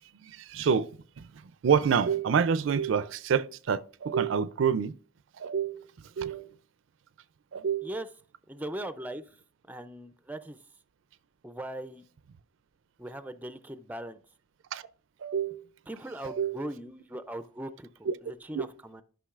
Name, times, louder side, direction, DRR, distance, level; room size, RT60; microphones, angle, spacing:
voice 1, 0.2-5.0 5.4-5.9 6.2-6.5 7.5-7.9 14.7-14.8 15.2-15.7 16.2-16.6 18.1-18.2 18.5-18.6, right 7 dB, 75° right, 0.4 m, -28 dB
voice 2, 8.5-9.3 9.7-10.6 11.4-12.0 13.0-14.2 15.9-19.0, right 1 dB, 10° right, 0.3 m, -39 dB
11.5 x 5.8 x 2.4 m
head